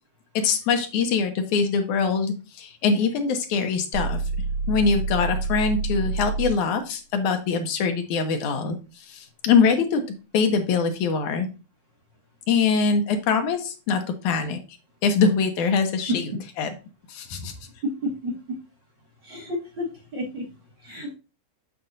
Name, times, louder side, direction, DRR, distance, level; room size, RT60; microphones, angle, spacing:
voice 1, 0.4-4.2 4.7-8.8 9.1-11.5 12.5-14.6 15.0-16.3 16.6-16.7 17.1-17.5, left 5 dB, 80° left, 5 dB, 2.4 m, -23 dB
sound 1, 3.9-6.7, right 3 dB, 70° right, 3.3 m, -27 dB
voice 2, 18.0-18.3 19.2-19.9 20.1-20.4 20.8-21.1, left 1 dB, 45° right, -2 dB, 1.8 m, -31 dB
7.6 x 6.8 x 2.6 m, 0.32 s
omnidirectional pair, 3.5 m